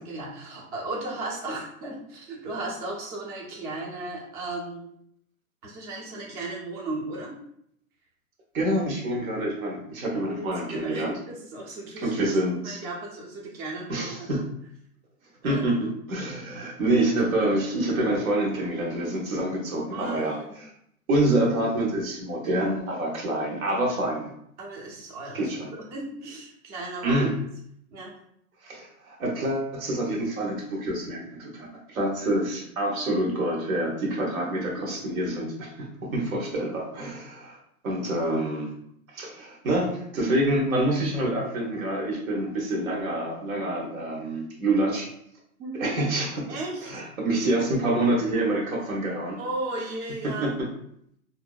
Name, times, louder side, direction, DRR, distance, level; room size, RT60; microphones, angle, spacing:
voice 1, 0.0-4.8 5.6-7.3 10.2-12.3 12.6-14.4 15.4-15.6 19.9-20.6 24.6-25.4 25.9-27.2 27.9-28.2 45.6-45.9 46.5-46.9 49.4-50.6, right 2 dB, 25° right, -3 dB, 0.6 m, -35 dB
voice 2, 8.5-11.1 12.0-12.8 13.9-14.4 15.4-20.7 21.1-24.3 25.3-25.7 27.0-27.3 28.6-37.6 37.8-38.7 39.1-45.1 45.8-46.4 46.8-49.4 50.2-50.7, right 1 dB, 75° right, -1 dB, 1.1 m, -27 dB
2.6 x 2.1 x 2.2 m, 0.71 s
hypercardioid pair, 125°, 42 cm